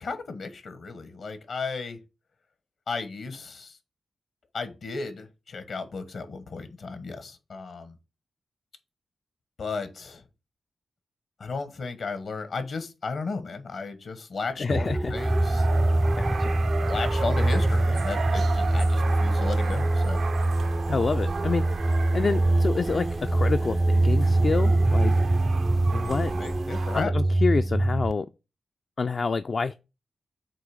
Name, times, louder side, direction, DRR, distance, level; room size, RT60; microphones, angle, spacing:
voice 1, 0.0-2.0 2.9-3.7 4.5-7.9 9.6-10.2 11.4-15.6 16.9-20.2 26.3-27.1, left 4 dB, 75° left, 1.2 m, -34 dB
voice 2, 14.6-15.2 16.1-16.5 20.9-21.8 22.1-25.1 25.9-26.3 26.9-28.3 29.0-29.8, left 4 dB, 55° left, 0.3 m, -28 dB
sound 1, 14.7-28.1, right 2 dB, 20° right, 0.3 m, -24 dB
sound 2, 15.1-27.0, right 5 dB, 75° right, 0.5 m, -35 dB
7.6 x 2.7 x 4.9 m
supercardioid pair, 40°, 0 cm